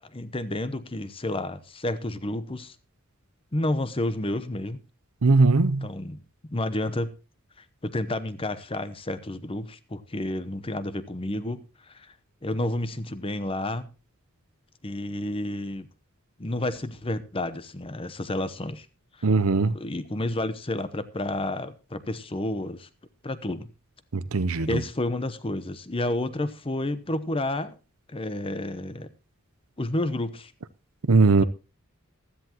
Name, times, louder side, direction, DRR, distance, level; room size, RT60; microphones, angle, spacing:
voice 1, 0.0-2.7 3.5-4.8 5.8-7.1 7.6-11.6 11.9-12.1 12.4-13.9 14.8-15.9 16.4-18.9 19.2-19.3 19.7-22.9 23.2-23.7 24.7-27.8 28.1-29.1 29.8-30.5 31.4-31.5, left 1 dB, 25° left, 0.9 m, -30 dB
voice 2, 5.2-5.9 19.2-19.7 24.3-24.7 31.1-31.4, right 3 dB, 75° right, 0.7 m, -19 dB
15.5 x 13.0 x 3.0 m
head